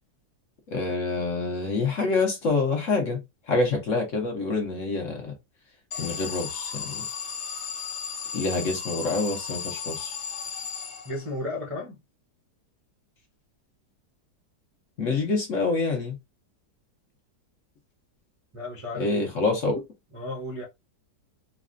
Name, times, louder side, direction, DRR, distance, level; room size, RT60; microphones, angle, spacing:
voice 1, 0.7-3.2 3.5-5.3 6.0-7.1 8.3-10.1 15.0-16.2 18.9-19.8, left 3 dB, 50° left, 1.1 m, -26 dB
Alarm, 5.9-11.5, left 6 dB, 70° left, 1.3 m, -35 dB
voice 2, 11.0-12.0 18.5-19.3 20.1-20.7, left 2 dB, 30° right, 0.6 m, -34 dB
4.1 x 2.3 x 2.5 m
omnidirectional pair, 1.9 m